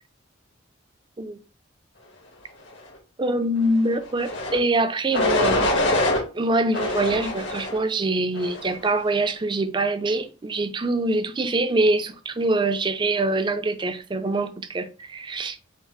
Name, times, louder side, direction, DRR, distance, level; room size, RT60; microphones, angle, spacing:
voice 1, 3.2-5.8 6.3-15.6, right 2 dB, 25° right, 0.4 m, -24 dB
sound 1, 4.2-4.6 5.1-6.2 6.7-7.8 8.3-8.8, left 1 dB, 65° left, 1.3 m, -24 dB
5.6 x 2.0 x 4.4 m
head